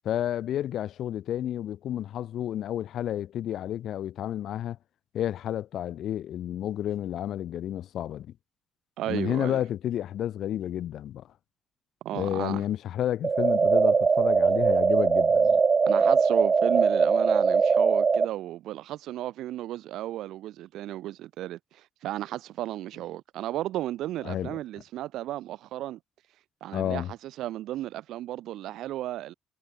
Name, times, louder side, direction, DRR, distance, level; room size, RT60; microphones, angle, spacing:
voice 1, 0.0-4.8 5.1-8.3 9.1-11.2 12.1-15.6 24.2-24.6 26.7-27.1, left 11 dB, 75° left, 0.5 m, -31 dB
voice 2, 9.0-9.6 12.0-12.6 15.9-26.0 26.6-29.3, right 14 dB, 85° right, 1.8 m, -34 dB
sound 1, 13.2-18.3, right 5 dB, 35° right, 0.5 m, -21 dB
cardioid pair, 90°, 0 cm